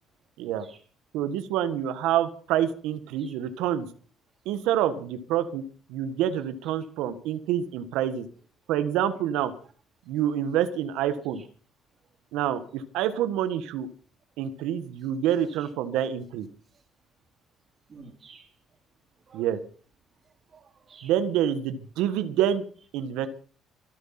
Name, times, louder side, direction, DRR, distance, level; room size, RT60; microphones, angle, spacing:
voice 1, 1.1-3.9 4.4-5.6 5.9-8.3 8.7-9.5 10.1-11.4 12.3-13.9 14.4-16.5 19.3-19.6 21.0-22.6 22.9-23.3, right 10 dB, 80° right, 1.5 m, -27 dB
voice 2, 17.9-18.5 19.3-19.5 20.5-21.1, right 4 dB, 40° right, 4.0 m, -51 dB
24.5 x 8.2 x 5.9 m
supercardioid pair, 75°, 0 cm